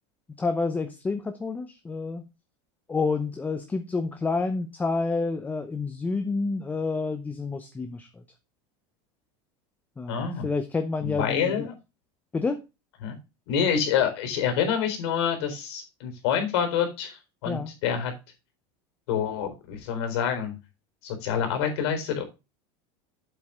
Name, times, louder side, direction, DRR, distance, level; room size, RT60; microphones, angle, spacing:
voice 1, 0.4-2.2 2.9-8.2 10.0-11.7 12.3-12.6 17.4-17.7, left 3 dB, 10° left, 8 dB, 0.8 m, -29 dB
voice 2, 10.1-10.5 11.0-11.7 13.0-13.1 13.5-18.1 19.1-20.5 21.0-22.2, left 8 dB, 80° left, 6 dB, 4.0 m, -27 dB
8.2 x 7.6 x 3.6 m, 0.27 s
supercardioid pair, 150°, 14 cm